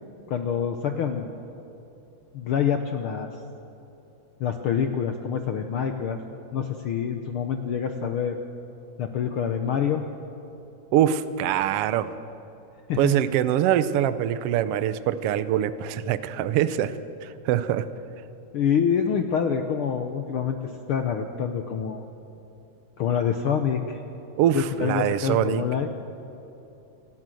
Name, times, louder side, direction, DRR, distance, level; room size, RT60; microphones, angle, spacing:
voice 1, 0.3-1.3 2.3-3.3 4.4-6.2 6.5-8.4 9.0-10.0 12.9-13.1 18.5-22.0 23.0-24.0 24.5-25.9, left 7 dB, 70° left, 6 dB, 1.3 m, -26 dB
voice 2, 10.9-12.1 12.9-17.9 24.4-25.6, right 10 dB, 70° right, 13 dB, 1.5 m, -24 dB
28.0 x 12.0 x 7.7 m, 2.9 s
omnidirectional pair, 3.4 m